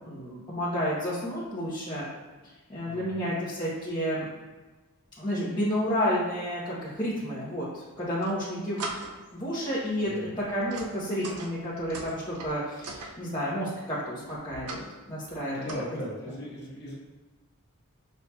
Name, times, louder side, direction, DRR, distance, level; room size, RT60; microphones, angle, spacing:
voice 1, 0.0-2.1 2.4-4.3 5.2-9.0 9.3-15.7, equal, 20° left, -11 dB, 0.8 m, -31 dB
voice 2, 2.8-3.3 10.0-10.4 15.5-17.0, equal, 50° left, -6 dB, 1.2 m, -38 dB
sound 1, 7.9-8.3 8.8-9.3 9.7-9.9 10.4-13.1 14.3-14.9 15.2-15.7, right 3 dB, 90° right, 0.6 m, -40 dB
6.3 x 2.8 x 2.2 m, 1.3 s
head